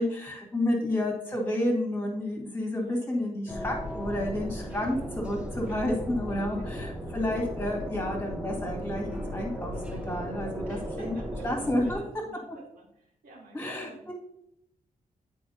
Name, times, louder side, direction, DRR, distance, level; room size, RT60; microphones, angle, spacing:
voice 1, 0.0-11.1 11.4-12.0 12.5-12.6 13.5-14.1, left 1 dB, 15° left, -1 dB, 1.9 m, -30 dB
voice 2, 2.4-3.1 4.7-4.8 5.8-6.4 6.7-7.2 10.7-14.0, right 2 dB, 80° right, -2 dB, 2.2 m, -53 dB
sound 1, 3.5-12.0, equal, 10° right, 1.0 m, -36 dB
10.0 x 4.7 x 2.8 m, 0.77 s
wide cardioid pair, 175°, 15 cm